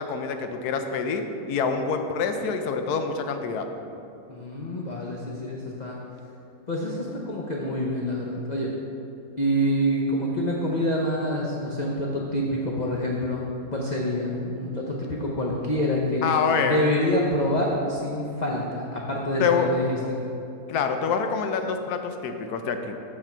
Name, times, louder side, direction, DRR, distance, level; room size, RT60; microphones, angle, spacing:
voice 1, 0.0-3.7 16.2-16.8 19.4-19.7 20.7-23.0, left 6 dB, 80° left, 6 dB, 1.2 m, -26 dB
voice 2, 4.3-6.0 6.7-8.7 9.4-13.4 13.7-16.3 16.6-20.2, equal, 40° left, -3 dB, 0.6 m, -26 dB
8.2 x 6.2 x 4.4 m, 2.8 s
omnidirectional pair, 1.7 m